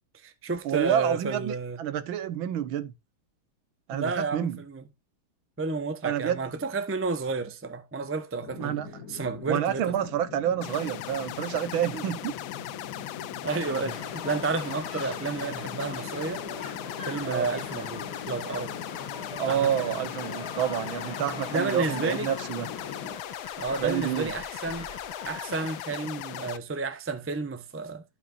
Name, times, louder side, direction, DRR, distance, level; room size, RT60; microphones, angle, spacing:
voice 1, 0.1-1.8 3.9-4.8 5.6-8.8 9.1-9.9 13.4-16.4 17.0-18.7 19.5-19.9 21.2-22.3 23.6-24.9 25.2-28.0, right 4 dB, 20° right, 0.3 m, -31 dB
voice 2, 0.7-2.9 3.9-4.6 6.0-6.4 8.6-8.9 9.5-12.4 17.2-17.5 19.4-22.7 23.8-24.3, right 10 dB, 75° right, 1.7 m, -28 dB
sound 1, 8.4-23.2, left 6 dB, 50° left, 1.5 m, -42 dB
sound 2, 10.6-26.6, left 13 dB, 75° left, 1.3 m, -39 dB
sound 3, 13.5-25.8, left 3 dB, 30° left, 2.5 m, -43 dB
14.5 x 5.7 x 2.5 m
omnidirectional pair, 2.2 m